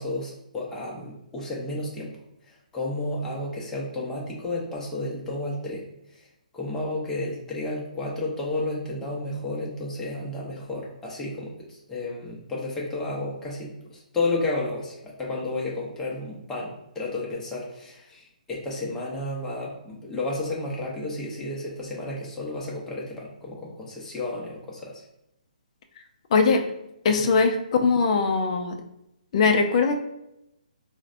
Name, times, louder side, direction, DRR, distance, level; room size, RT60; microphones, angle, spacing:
voice 1, 0.0-2.1 2.5-5.8 6.2-6.3 6.5-25.0 27.1-27.3, left 2 dB, 10° left, -5 dB, 0.7 m, -32 dB
voice 2, 26.3-26.6 27.0-27.6 27.8-28.7 29.3-30.0, left 4 dB, 45° left, 5 dB, 0.4 m, -20 dB
3.9 x 2.1 x 2.5 m, 0.85 s
hypercardioid pair, 145°, 5 cm